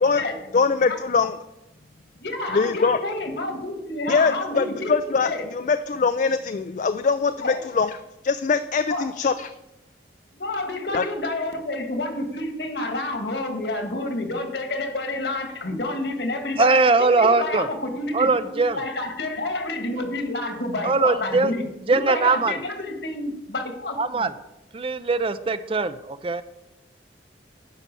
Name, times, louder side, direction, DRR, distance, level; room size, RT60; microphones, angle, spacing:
voice 1, 0.5-1.4 2.5-3.0 4.1-8.0 8.2-9.5 10.9-11.0, left 5 dB, 45° left, 10 dB, 0.3 m, -22 dB
voice 2, 2.2-5.4 7.4-7.6 8.9-9.1 10.4-21.6 21.9-24.3, left 2 dB, 70° left, 5 dB, 1.7 m, -29 dB
voice 3, 16.6-17.7 18.1-18.8 20.8-21.5 21.9-22.6 24.0-24.3 24.7-26.4, right 3 dB, 30° right, 12 dB, 0.4 m, -21 dB
10.5 x 5.7 x 6.8 m, 0.91 s
head